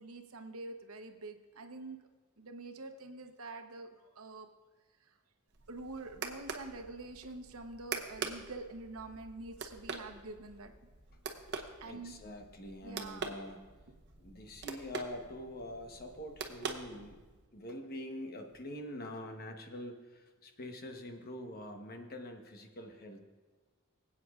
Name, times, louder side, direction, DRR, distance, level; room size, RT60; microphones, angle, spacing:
voice 1, 0.0-2.0 2.4-4.5 5.7-10.7 11.8-12.1 12.8-13.3, right 3 dB, 85° right, 6 dB, 0.9 m, -46 dB
sound 1, 5.5-17.4, right 5 dB, 55° right, 0.9 m, -45 dB
voice 2, 11.8-13.6 14.2-17.2 17.5-23.2, left 1 dB, 45° left, 4 dB, 1.1 m, -45 dB
24.5 x 8.5 x 2.4 m, 1.3 s
head